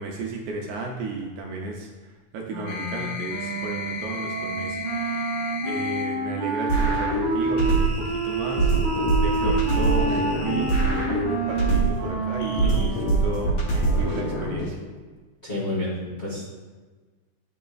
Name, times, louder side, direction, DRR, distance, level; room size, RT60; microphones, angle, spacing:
voice 1, 0.0-5.2 5.6-8.8 9.2-14.8, right 3 dB, 80° right, 0 dB, 1.8 m, -33 dB
Wind instrument woodwind instrument, 2.5-14.5, right 3 dB, 65° right, 1.1 m, -29 dB
sound 1, 2.6-6.1 7.6-10.9 12.4-12.9, left 4 dB, 85° left, 2.7 m, -36 dB
sound 2, 6.7-8.1 8.6-12.1 12.6-14.7, right 3 dB, 65° left, 1.6 m, -23 dB
voice 2, 15.4-16.5, left 1 dB, 45° left, -10 dB, 0.7 m, -29 dB
11.0 x 4.1 x 2.3 m, 1.4 s
omnidirectional pair, 3.9 m